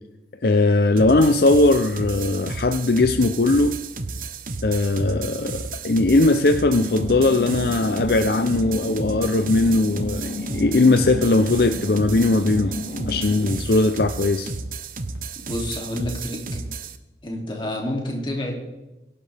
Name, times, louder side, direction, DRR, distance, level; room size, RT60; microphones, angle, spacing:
voice 1, 0.4-3.8 4.6-12.7 13.1-14.5, left 2 dB, 60° left, 8 dB, 0.6 m, -19 dB
sound 1, 1.0-17.0, right 3 dB, 50° right, 0.9 m, -33 dB
sound 2, 6.7-13.7, left 1 dB, 75° left, 2.8 m, -32 dB
voice 2, 15.4-16.6 17.2-18.5, left 1 dB, 30° left, 0 dB, 2.8 m, -29 dB
22.5 x 11.0 x 3.5 m, 1.0 s
head